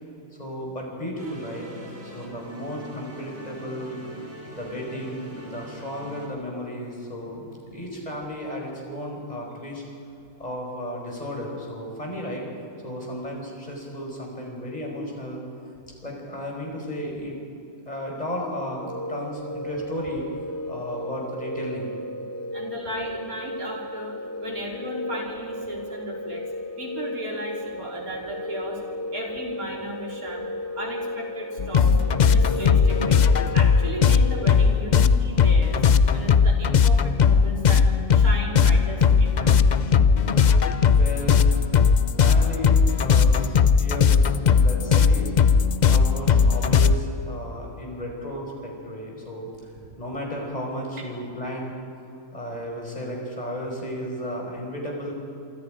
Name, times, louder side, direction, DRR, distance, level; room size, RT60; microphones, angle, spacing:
voice 1, 0.4-1.7 2.0-4.0 4.5-7.4 7.7-9.9 10.4-12.5 12.8-15.4 16.0-17.4 17.9-20.3 20.7-22.0 40.9-41.8 42.2-44.3 44.6-45.3 45.6-49.7 50.0-51.7 52.3-55.2, equal, 25° left, 0 dB, 5.2 m, -34 dB
sound 1, 1.2-6.3, equal, 40° right, 3.7 m, -43 dB
sound 2, 18.8-34.5, left 1 dB, 10° left, 2.3 m, -34 dB
voice 2, 22.5-26.5 26.8-28.8 29.1-30.4 30.8-35.8 36.1-37.8 38.1-39.7, equal, 80° right, -1 dB, 4.4 m, -35 dB
sound 3, 31.6-46.9, left 6 dB, 50° left, 0.5 m, -18 dB
27.0 x 25.0 x 5.1 m, 2.6 s
omnidirectional pair, 1.5 m